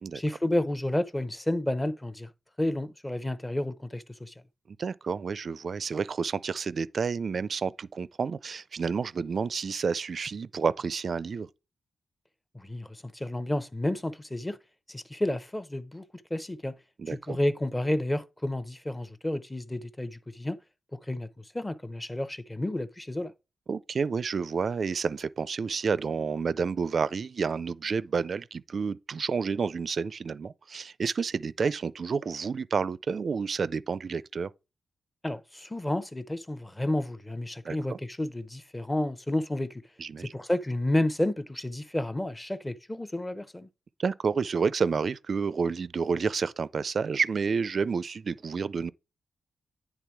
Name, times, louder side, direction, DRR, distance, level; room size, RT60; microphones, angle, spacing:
voice 1, 0.1-2.3 2.6-4.3 12.5-14.6 14.9-16.0 16.3-16.8 17.1-20.6 20.9-23.3 35.2-39.8 40.2-43.7, left 1 dB, 10° left, 0.7 m, -31 dB
voice 2, 4.7-11.5 17.0-17.4 23.7-34.5 37.6-38.0 40.0-40.3 44.0-48.9, right 5 dB, 50° right, 0.4 m, -30 dB
10.0 x 3.5 x 4.6 m
cardioid pair, 105°, 0 cm